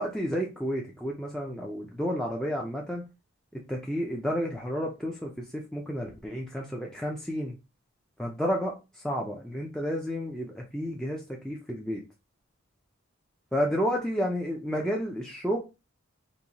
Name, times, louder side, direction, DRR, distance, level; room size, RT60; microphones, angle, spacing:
voice 1, 0.0-3.0 3.5-7.6 8.2-8.7 9.0-12.0 13.5-15.6, equal, ahead, -1 dB, 0.4 m, -31 dB
4.1 x 2.7 x 2.8 m, 0.27 s
head